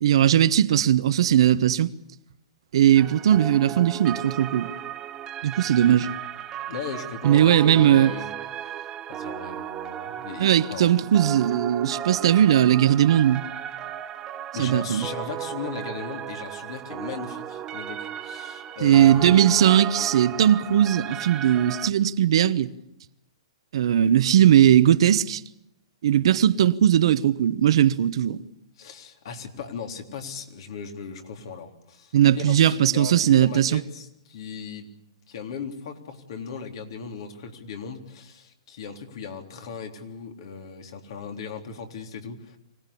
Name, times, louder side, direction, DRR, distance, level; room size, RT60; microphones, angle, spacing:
voice 1, 0.0-1.9 2.7-4.7 5.4-6.1 7.2-8.1 10.4-13.4 14.6-15.1 18.8-22.7 23.7-25.4 26.0-28.4 32.1-33.8, right 10 dB, 65° right, 1.1 m, -19 dB
sound 1, 2.9-21.9, right 10 dB, 20° right, 1.1 m, -35 dB
voice 2, 6.7-8.3 8.6-10.9 14.5-19.4 28.8-34.9 35.3-42.6, left 6 dB, 60° left, 3.6 m, -37 dB
25.0 x 18.0 x 8.5 m
hypercardioid pair, 140°, 3 cm